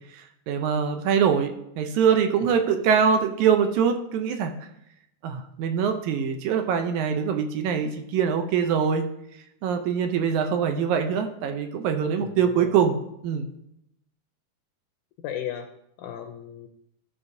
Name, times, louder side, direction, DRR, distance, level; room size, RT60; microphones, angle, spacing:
voice 1, 0.1-4.5 5.2-9.1 9.6-13.0 13.2-13.5, right 7 dB, 80° right, 6 dB, 1.9 m, -23 dB
voice 2, 12.2-12.8 15.2-15.7 16.0-16.7, left 10 dB, 80° left, 5 dB, 1.9 m, -35 dB
12.5 x 5.5 x 2.6 m, 0.79 s
omnidirectional pair, 3.7 m